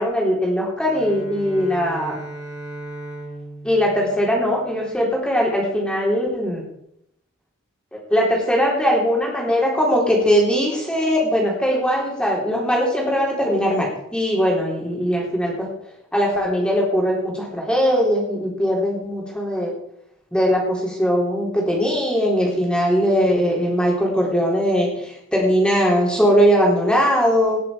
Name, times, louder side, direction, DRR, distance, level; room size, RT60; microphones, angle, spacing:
voice 1, 0.0-2.2 3.6-6.6 8.1-15.7 16.1-19.7 20.3-27.6, equal, 5° left, -2 dB, 3.7 m, -20 dB
Bowed string instrument, 0.8-5.1, right 1 dB, 20° right, 2.7 m, -37 dB
18.5 x 7.6 x 5.1 m, 0.75 s
head